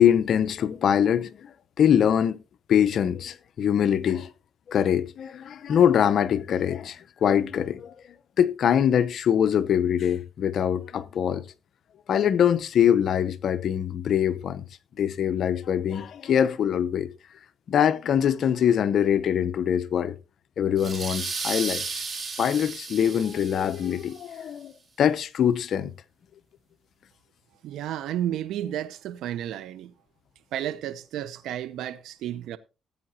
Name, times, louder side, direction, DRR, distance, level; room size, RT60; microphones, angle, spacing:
voice 1, 0.0-2.4 2.7-4.3 4.7-7.9 8.4-11.4 12.1-14.6 15.0-17.1 17.7-20.2 20.6-21.8 22.4-24.7 25.0-25.9, left 9 dB, 65° left, 0.8 m, -23 dB
sound 1, 20.8-24.2, right 4 dB, 40° right, 3.8 m, -34 dB
voice 2, 27.6-29.9 30.5-32.6, right 11 dB, 85° right, 0.6 m, -32 dB
15.0 x 8.8 x 2.8 m
cardioid pair, 90°, 0 cm